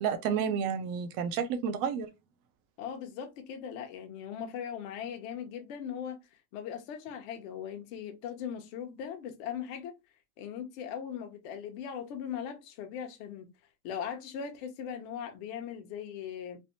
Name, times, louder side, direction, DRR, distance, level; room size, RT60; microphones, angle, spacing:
voice 1, 0.0-2.1, right 7 dB, 45° right, 0.5 m, -30 dB
voice 2, 2.8-6.2 6.5-9.9 10.4-13.5 13.8-16.6, left 8 dB, 55° left, 0.8 m, -39 dB
3.3 x 2.0 x 2.6 m
supercardioid pair, 130°, 49 cm